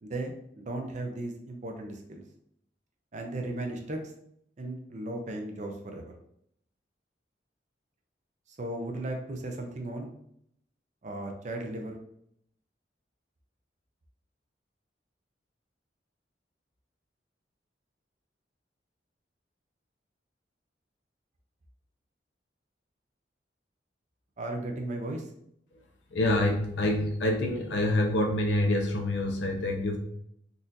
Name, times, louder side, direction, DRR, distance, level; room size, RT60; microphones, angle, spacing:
voice 1, 0.0-2.2 3.1-4.1 4.6-6.1 8.6-10.1 11.0-12.0 24.4-25.2, right 2 dB, 45° right, 3 dB, 0.5 m, -36 dB
voice 2, 26.1-30.0, left 1 dB, 85° left, 1 dB, 0.5 m, -26 dB
4.0 x 2.5 x 2.7 m, 0.72 s
head